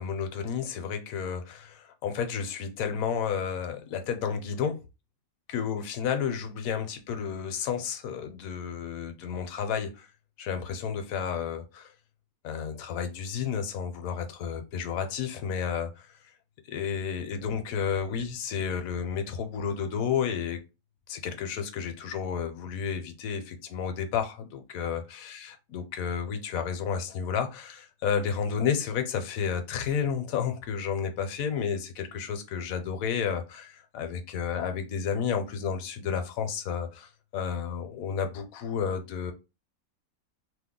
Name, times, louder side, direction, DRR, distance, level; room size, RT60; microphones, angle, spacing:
voice 1, 0.0-4.8 5.5-10.1 10.4-11.9 12.4-16.2 16.7-20.6 21.1-39.3, left 7 dB, 75° left, 1.0 m, -31 dB
2.8 x 2.1 x 3.6 m
omnidirectional pair, 1.5 m